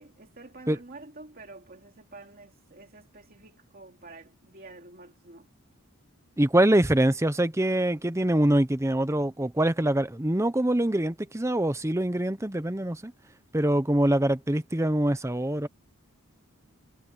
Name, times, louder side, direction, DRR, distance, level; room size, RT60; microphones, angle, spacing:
voice 1, 0.0-5.5, right 2 dB, 45° right, 2.7 m, -48 dB
voice 2, 6.4-13.1 13.5-15.7, right 1 dB, 15° right, 0.8 m, -24 dB
head